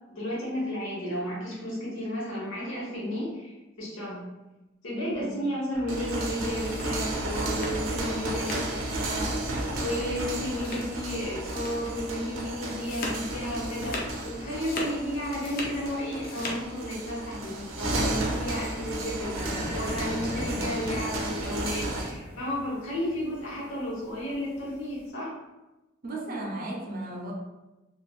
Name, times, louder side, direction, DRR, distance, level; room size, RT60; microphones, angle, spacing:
voice 1, 0.1-4.2 4.8-9.4 9.7-25.3, equal, 85° left, -6 dB, 1.2 m, -33 dB
voice 2, 5.0-5.5 20.3-20.7 26.0-27.3, right 1 dB, 45° right, -1 dB, 0.5 m, -36 dB
sound 1, 5.7-22.2, right 1 dB, 90° right, 0.5 m, -33 dB
sound 2, 6.5-8.8 9.1-9.5 9.7-9.9 10.5-11.1 11.5-11.9 12.2-14.2 14.5-15.8 16.1-16.6, left 2 dB, 45° left, 0.5 m, -39 dB
sound 3, 19.4-25.0, left 1 dB, 10° left, 0.8 m, -41 dB
3.3 x 2.4 x 2.3 m, 1.0 s
head